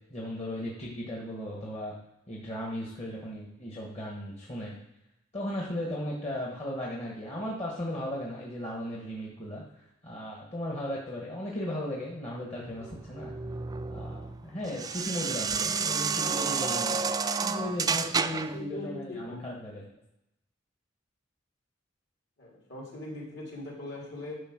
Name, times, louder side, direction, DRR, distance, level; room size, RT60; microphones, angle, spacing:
voice 1, 0.1-1.9 2.3-4.7 5.3-13.3 13.9-17.0 17.4-19.9, left 1 dB, 35° left, -3 dB, 1.4 m, -36 dB
sound 1, 12.8-18.6, right 5 dB, 20° right, 0.3 m, -30 dB
voice 2, 18.2-19.4 22.4-24.4, left 2 dB, 60° left, -3 dB, 3.6 m, -41 dB
10.0 x 4.4 x 6.1 m, 0.87 s
head